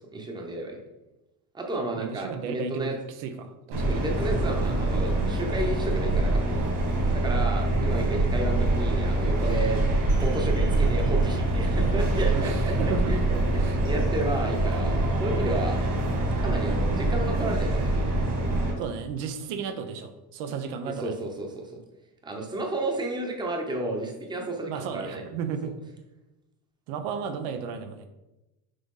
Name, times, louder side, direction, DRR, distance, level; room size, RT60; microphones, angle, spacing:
voice 1, 0.1-0.8 1.5-3.0 3.9-6.6 7.1-9.8 10.2-13.2 13.5-15.8 16.4-18.0 20.8-21.7 22.2-25.2, right 2 dB, 10° right, 2 dB, 0.8 m, -32 dB
voice 2, 2.0-2.9 3.2-3.9 7.3-7.4 12.3-13.1 13.6-13.8 18.8-21.2 24.7-25.7 26.9-28.1, right 6 dB, 90° right, 8 dB, 0.9 m, -34 dB
sound 1, 3.7-18.7, right 2 dB, 55° right, 2.1 m, -25 dB
6.6 x 4.1 x 3.7 m, 0.98 s
cardioid pair, 155°, 37 cm